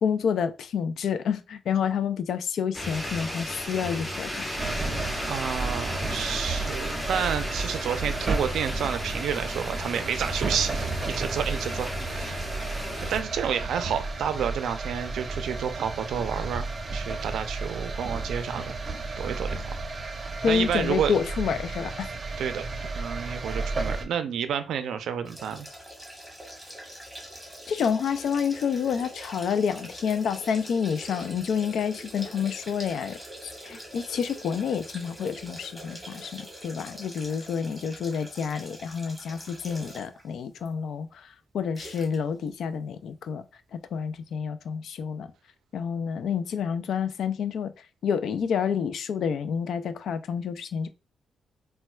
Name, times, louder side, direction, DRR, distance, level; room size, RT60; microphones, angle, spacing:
voice 1, 0.0-4.4 20.4-22.1 27.7-41.3 41.5-43.4 43.7-45.3 45.7-47.7 48.0-50.9, left 7 dB, 75° left, 0.4 m, -29 dB
sound 1, 2.7-13.2, left 1 dB, 15° left, 1.0 m, -34 dB
sound 2, 4.6-24.0, right 3 dB, 35° right, 0.6 m, -33 dB
voice 2, 5.3-12.5 13.1-18.8 19.2-19.7 20.5-21.1 22.4-22.6 22.9-25.7, right 8 dB, 80° right, 0.4 m, -30 dB
sound 3, 25.3-40.2 40.7-40.8 41.8-42.2 42.5-42.6, equal, ahead, 1.2 m, -44 dB
4.1 x 2.1 x 2.3 m
cardioid pair, 95°, 0 cm